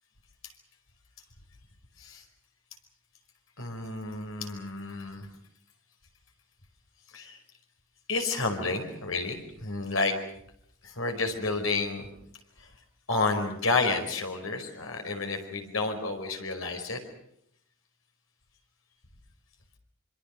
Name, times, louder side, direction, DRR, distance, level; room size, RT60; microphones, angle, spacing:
voice 1, 3.6-5.3 7.1-7.4 8.1-10.2 10.8-12.1 12.6-12.7 13.1-17.0, left 3 dB, 85° left, 4 dB, 4.9 m, -30 dB
26.0 x 24.5 x 6.4 m, 0.70 s
head